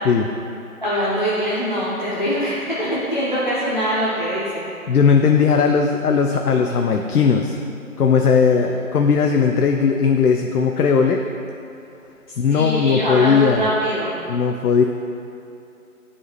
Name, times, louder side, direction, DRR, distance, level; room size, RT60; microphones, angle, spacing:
voice 1, 0.8-4.7 12.5-14.2, equal, 35° left, -10 dB, 0.7 m, -23 dB
voice 2, 4.9-7.6 8.0-11.2 12.4-13.7 14.3-14.8, left 6 dB, 90° left, 4 dB, 0.5 m, -17 dB
9.7 x 4.1 x 3.0 m, 2.7 s
figure-of-eight pair, 170°, 44 cm